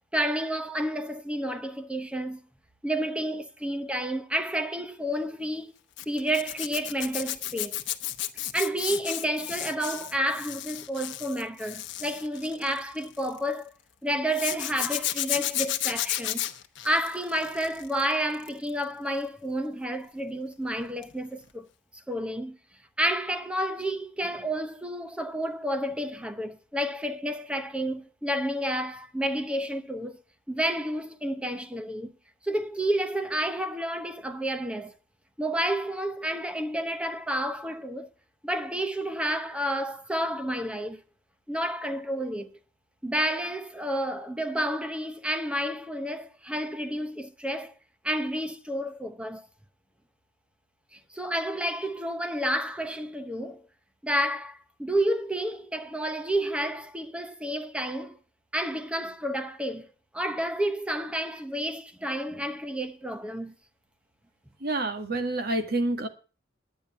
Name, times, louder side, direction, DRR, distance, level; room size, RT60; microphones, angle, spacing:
voice 1, 0.1-2.4 2.8-5.7 6.1-7.8 8.5-13.7 14.0-16.4 16.8-21.7 22.1-22.6 23.0-30.2 30.5-32.1 32.4-34.9 35.4-38.1 38.4-41.0 41.5-42.5 43.0-47.7 48.0-49.5 50.9-53.6 54.0-58.2 58.5-59.9 60.1-63.5, right 1 dB, 5° right, 0.9 m, -30 dB
Zipper (clothing), 6.0-13.4 14.3-18.0 18.3-18.7 21.0-21.2 21.4-21.5, left 14 dB, 65° left, 1.0 m, -33 dB
voice 2, 64.6-66.1, right 2 dB, 55° right, 1.6 m, -28 dB
10.0 x 9.0 x 7.0 m
head